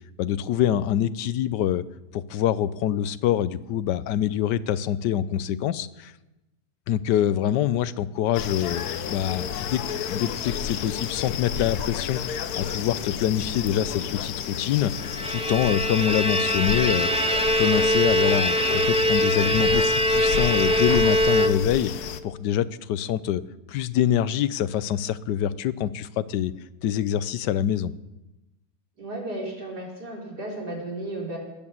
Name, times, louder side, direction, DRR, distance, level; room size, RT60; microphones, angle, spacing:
voice 1, 0.2-1.8 2.1-6.1 6.9-9.8 10.1-17.1 17.6-23.4 23.7-26.5 26.8-27.9, left 10 dB, 90° left, 16 dB, 1.3 m, -25 dB
sound 1, 8.3-22.2, left 8 dB, 70° left, 1.2 m, -32 dB
Bowed string instrument, 15.0-22.0, equal, 10° right, 0.3 m, -23 dB
voice 2, 29.0-31.4, right 1 dB, 70° right, -2 dB, 4.6 m, -34 dB
19.5 x 8.8 x 7.3 m, 1.0 s
omnidirectional pair, 1.8 m